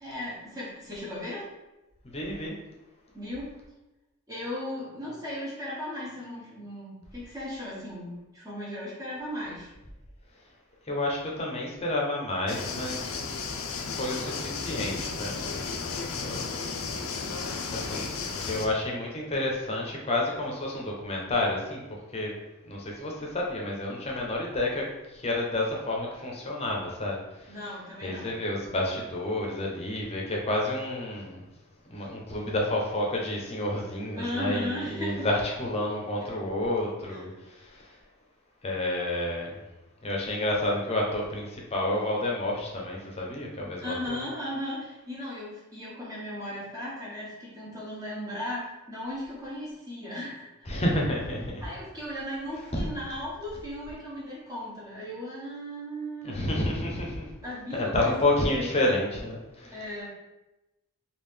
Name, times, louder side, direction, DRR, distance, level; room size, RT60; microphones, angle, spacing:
voice 1, 0.0-1.4 3.1-3.5 4.3-9.7 27.5-28.3 34.2-35.3 37.1-37.2 43.8-50.5 51.6-56.6 57.4-58.7 59.7-60.1, left 1 dB, 15° right, -7 dB, 0.7 m, -36 dB
voice 2, 2.1-2.5 10.9-13.0 13.9-16.4 17.7-18.1 18.5-21.8 22.1-22.3 22.7-24.9 25.1-27.5 28.0-31.4 31.9-37.8 38.6-39.6 40.0-44.2 50.7-51.6 52.7-52.8 56.2-57.2 57.7-59.8, left 1 dB, 30° left, -1 dB, 0.7 m, -30 dB
sound 1, 12.5-18.7, left 4 dB, 70° left, 0.4 m, -34 dB
3.7 x 2.4 x 3.3 m, 1.0 s
head